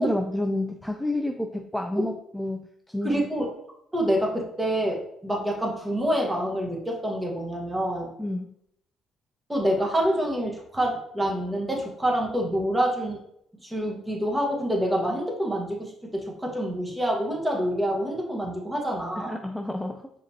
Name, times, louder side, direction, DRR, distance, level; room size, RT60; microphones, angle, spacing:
voice 1, 0.0-2.7 2.9-3.2 8.2-8.5 19.2-20.1, left 1 dB, 5° left, 4 dB, 0.4 m, -29 dB
voice 2, 3.0-3.5 3.9-8.1 9.5-13.2 13.6-19.4, equal, 15° right, -1 dB, 1.4 m, -27 dB
4.9 x 2.9 x 2.8 m, 0.73 s
supercardioid pair, 60°, 0 cm